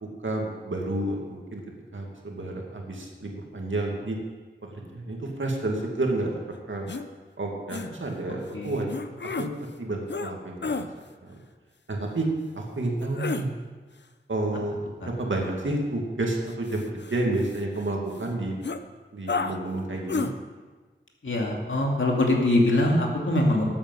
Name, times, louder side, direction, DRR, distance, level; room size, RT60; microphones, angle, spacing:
voice 1, 0.0-1.6 1.9-4.2 4.6-6.3 6.7-6.9 7.4-8.9 9.4-10.8 11.2-11.3 11.9-13.5 14.3-14.8 15.0-18.6 19.1-20.3, right 2 dB, 80° right, 0 dB, 2.3 m, -30 dB
sound 1, 6.9-7.0 7.7-7.9 8.9-9.5 10.1-10.3 10.6-10.9 13.0-13.5 16.5-17.8 18.2-18.3 18.6-18.8 19.3-19.6 20.1-20.3, left 4 dB, 60° left, 0.7 m, -31 dB
voice 2, 21.2-23.6, left 1 dB, 80° left, -1 dB, 2.4 m, -23 dB
13.5 x 8.6 x 5.6 m, 1.4 s
wide cardioid pair, 55°, 20 cm